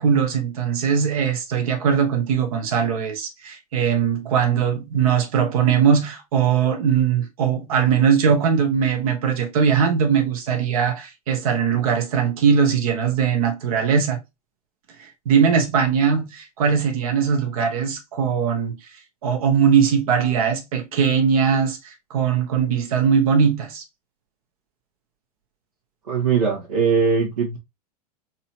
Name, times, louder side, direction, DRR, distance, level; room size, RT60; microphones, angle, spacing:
voice 1, 0.0-14.2 15.0-18.8 19.2-23.8, right 7 dB, 65° right, 1.2 m, -20 dB
voice 2, 26.1-27.6, right 6 dB, 80° right, 1.6 m, -20 dB
4.0 x 2.9 x 2.8 m
hypercardioid pair, 95°, 20 cm